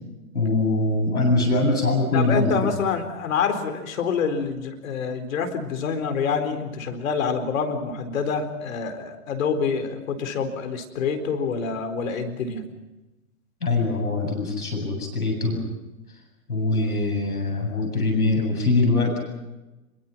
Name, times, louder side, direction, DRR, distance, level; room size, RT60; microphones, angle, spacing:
voice 1, 0.3-2.7 13.6-15.6 16.5-19.2, left 2 dB, 90° left, 2 dB, 7.9 m, -23 dB
voice 2, 2.1-12.6, left 5 dB, 65° left, 7 dB, 4.3 m, -26 dB
26.0 x 23.5 x 5.9 m, 1.1 s
hypercardioid pair, 115°, 43 cm